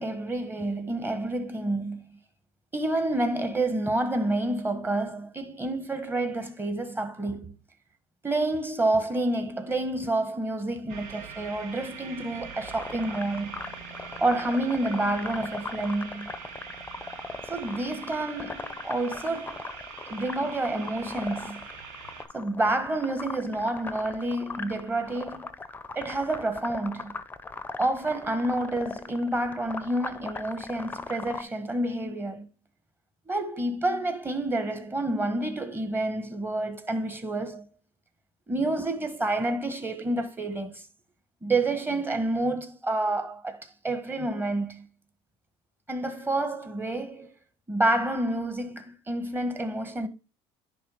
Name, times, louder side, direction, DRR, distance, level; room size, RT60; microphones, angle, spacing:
voice 1, 0.0-2.1 2.7-7.5 8.2-13.6 14.2-16.3 17.5-19.8 20.1-21.7 22.3-25.4 25.9-27.2 27.8-32.5 33.3-37.6 38.5-40.8 41.4-44.9 45.9-47.3 47.7-50.1, right 2 dB, 15° right, 1.6 m, -29 dB
sound 1, 10.9-22.2, right 6 dB, 70° right, 1.9 m, -43 dB
sound 2, 12.5-31.4, left 4 dB, 15° left, 0.7 m, -39 dB
10.0 x 3.4 x 5.0 m
supercardioid pair, 105°, 13 cm